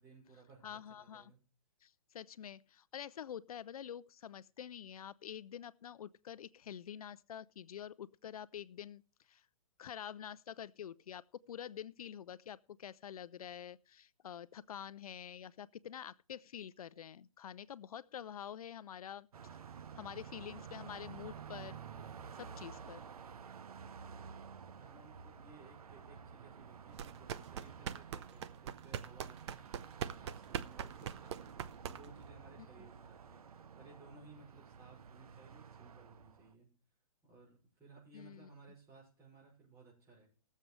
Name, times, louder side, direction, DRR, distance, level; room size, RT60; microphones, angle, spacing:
voice 1, 0.0-1.4 24.6-36.7 37.2-40.3, right 4 dB, 15° right, 6.1 m, -59 dB
voice 2, 0.6-1.3 1.8-9.0 9.3-9.5 9.8-19.3 19.9-21.8 22.3-23.0 38.1-38.5, left 9 dB, 80° left, 0.5 m, -47 dB
Car passing by, 19.3-36.5, right 7 dB, 85° right, 0.8 m, -52 dB
sound 1, 26.9-32.3, right 9 dB, 50° right, 0.7 m, -42 dB
20.0 x 7.5 x 3.2 m
hypercardioid pair, 150°, 18 cm